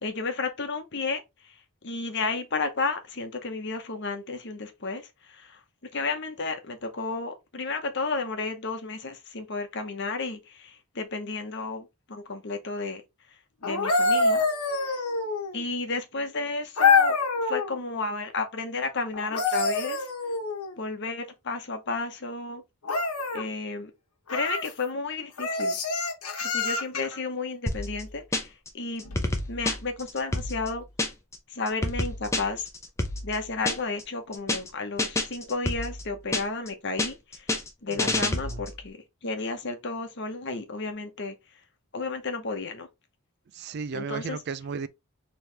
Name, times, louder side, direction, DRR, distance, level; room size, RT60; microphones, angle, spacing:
voice 1, 0.0-1.2 1.8-5.6 5.9-13.0 13.6-14.4 15.5-17.2 17.5-20.1 20.8-22.6 23.3-23.9 24.3-25.8 26.5-29.0 29.5-30.8 31.5-32.7 33.2-37.5 37.8-41.3 41.9-42.9 43.9-44.4, left 3 dB, 50° left, 0.9 m, -32 dB
sound 1, 13.6-15.6 16.8-17.7 19.1-20.8 22.8-23.5 24.3-24.7 25.4-27.2 29.0-29.2, left 4 dB, 85° left, 1.0 m, -26 dB
sound 2, 27.7-28.7 29.0-31.4 31.7-34.0 34.3-34.7 35.0-36.7 37.0-38.8, left 2 dB, 15° left, 0.7 m, -29 dB
voice 2, 37.9-38.6 43.5-44.9, right 5 dB, 50° right, 0.4 m, -35 dB
4.5 x 3.1 x 3.3 m
head